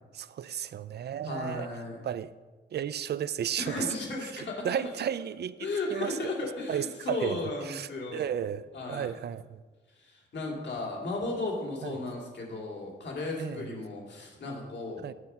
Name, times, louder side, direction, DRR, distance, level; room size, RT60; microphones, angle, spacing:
voice 1, 0.1-1.7 2.0-2.3 2.7-3.9 4.2-5.5 5.9-6.3 6.7-7.4 7.6-9.6 11.8-12.0 13.4-13.7 15.0-15.1, right 9 dB, 60° right, 0.4 m, -34 dB
voice 2, 1.2-2.0 3.6-5.1 5.6-8.4 8.7-9.2 10.0-15.0, left 2 dB, 70° left, 2.6 m, -35 dB
9.6 x 7.8 x 5.7 m
wide cardioid pair, 165°, 19 cm